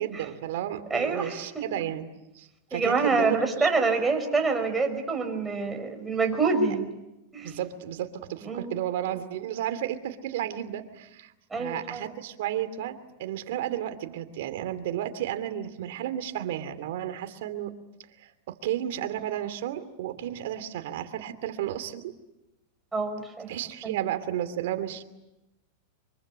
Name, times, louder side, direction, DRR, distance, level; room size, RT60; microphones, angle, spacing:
voice 1, 0.0-2.0 2.3-3.7 7.4-17.7 18.2-22.1 23.5-25.0, right 11 dB, 70° right, 10 dB, 2.7 m, -33 dB
voice 2, 0.9-1.6 2.7-6.9 7.3-7.5 8.4-8.7 11.5-12.1 22.9-23.5 23.8-24.0, right 4 dB, 10° right, 4 dB, 5.5 m, -26 dB
25.0 x 24.0 x 9.7 m, 0.95 s
hypercardioid pair, 115°, 0 cm